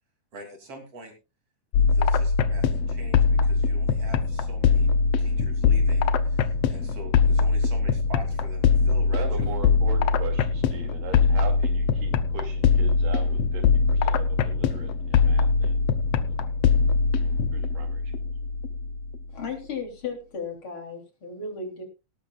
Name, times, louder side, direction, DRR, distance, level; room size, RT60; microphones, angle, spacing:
voice 1, 0.3-1.1 1.8-4.9 5.2-9.5, right 1 dB, 45° right, 3 dB, 4.0 m, -45 dB
sound 1, 1.7-19.3, left 5 dB, 75° left, 1.4 m, -22 dB
voice 2, 9.1-15.8 16.1-16.4 17.5-18.1, right 6 dB, 85° right, 4 dB, 4.3 m, -39 dB
voice 3, 19.3-21.8, left 4 dB, 40° left, 3 dB, 4.0 m, -35 dB
18.0 x 12.5 x 2.4 m, 0.30 s
omnidirectional pair, 3.7 m